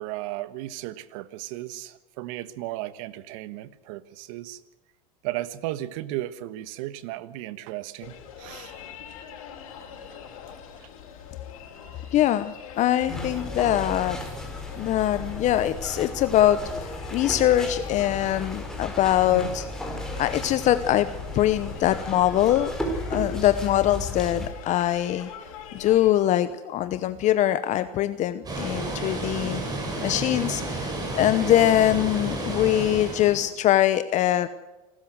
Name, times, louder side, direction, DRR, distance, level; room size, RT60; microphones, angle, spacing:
voice 1, 0.0-4.6 5.2-8.7 17.6-17.7, right 15 dB, 65° right, 15 dB, 1.4 m, -35 dB
sound 1, 8.0-26.1, left 7 dB, 75° left, 5.0 m, -44 dB
voice 2, 12.1-14.2 14.8-19.7 20.2-21.1 21.3-22.7 23.1-25.3 25.7-34.5, left 12 dB, 45° left, 13 dB, 0.9 m, -23 dB
sound 2, 13.1-24.5, left 1 dB, 5° left, 4.6 m, -35 dB
Water, 28.5-33.5, right 2 dB, 20° right, 7.2 m, -31 dB
27.0 x 13.5 x 7.9 m, 1.1 s
supercardioid pair, 110°, 18 cm